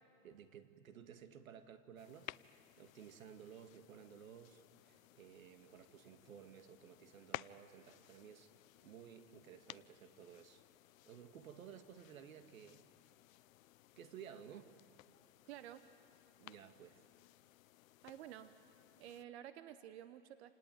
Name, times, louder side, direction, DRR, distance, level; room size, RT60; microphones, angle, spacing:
voice 1, 0.2-8.5 8.8-10.6 11.1-12.8 14.0-14.7 16.4-17.0, right 8 dB, 85° right, 8 dB, 2.0 m, -56 dB
sound 1, 2.0-19.2, left 15 dB, 80° left, 0.6 m, -57 dB
voice 2, 15.5-15.8 18.0-18.5 19.0-20.5, right 11 dB, 55° right, 11 dB, 1.0 m, -51 dB
28.0 x 19.0 x 9.2 m, 2.5 s
supercardioid pair, 155°, 40 cm